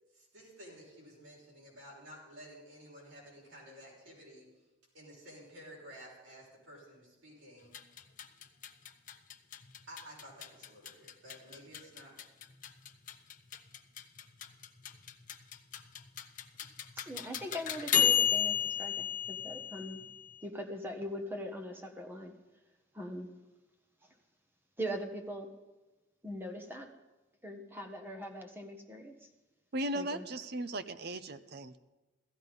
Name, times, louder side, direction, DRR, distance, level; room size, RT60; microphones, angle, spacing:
voice 1, 0.1-4.5 4.9-7.7 9.9-12.2, equal, 80° right, -4 dB, 6.3 m, -52 dB
sound 1, 7.6-20.4, left 8 dB, 45° left, 0.9 m, -34 dB
voice 2, 17.0-20.0 20.4-22.3 22.9-23.3 24.8-25.5 26.2-26.9 27.4-29.1 29.9-30.2, equal, 10° right, 4 dB, 1.4 m, -41 dB
voice 3, 29.7-31.8, right 1 dB, 55° right, 12 dB, 0.7 m, -37 dB
16.5 x 13.5 x 5.3 m, 1.1 s
head